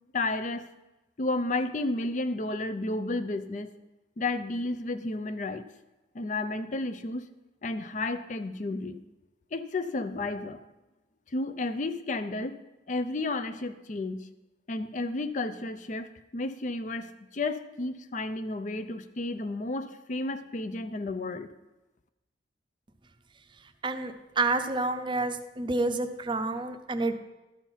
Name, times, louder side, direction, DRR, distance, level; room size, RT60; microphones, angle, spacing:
voice 1, 0.1-0.7 1.2-3.7 4.2-5.6 6.1-7.3 7.6-9.0 9.5-10.6 11.3-12.6 12.9-14.3 14.7-21.5, left 2 dB, 45° left, 11 dB, 0.5 m, -32 dB
voice 2, 23.8-27.1, right 3 dB, 30° right, 8 dB, 0.6 m, -29 dB
13.0 x 4.4 x 5.6 m, 1.1 s
head